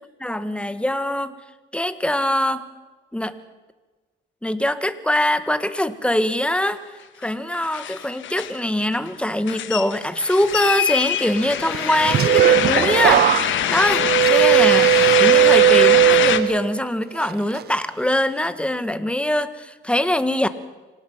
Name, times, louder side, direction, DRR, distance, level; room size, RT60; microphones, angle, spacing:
voice 1, 0.0-1.3 1.7-2.7 3.1-3.4 4.4-14.9 15.2-20.5, left 1 dB, 5° left, 11 dB, 1.7 m, -23 dB
sound 1, 7.2-7.3 7.5-8.6 8.9-16.4, left 11 dB, 75° left, 1.6 m, -23 dB
sound 2, 11.7-16.8 17.2-17.6, right 13 dB, 55° right, 0.6 m, -17 dB
25.5 x 18.5 x 5.9 m, 1.2 s
cardioid pair, 90°, 20 cm